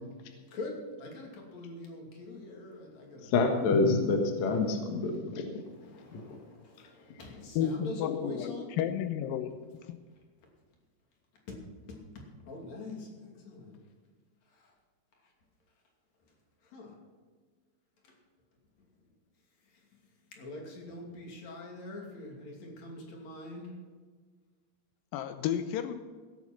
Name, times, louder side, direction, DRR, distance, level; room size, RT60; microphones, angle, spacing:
voice 1, 0.5-3.4 5.6-8.7 11.5-11.6 11.9-13.8 14.5-14.7 16.6-17.0 18.0-18.2 19.6-20.0 20.3-23.8, left 2 dB, 45° left, 0 dB, 3.4 m, -44 dB
voice 2, 3.3-5.5 6.1-6.2, left 3 dB, 60° left, 3 dB, 2.0 m, -27 dB
voice 3, 7.6-9.5 9.8-10.0 25.1-25.9, left 9 dB, 90° left, 10 dB, 2.0 m, -32 dB
18.0 x 8.2 x 6.2 m, 1.5 s
omnidirectional pair, 5.0 m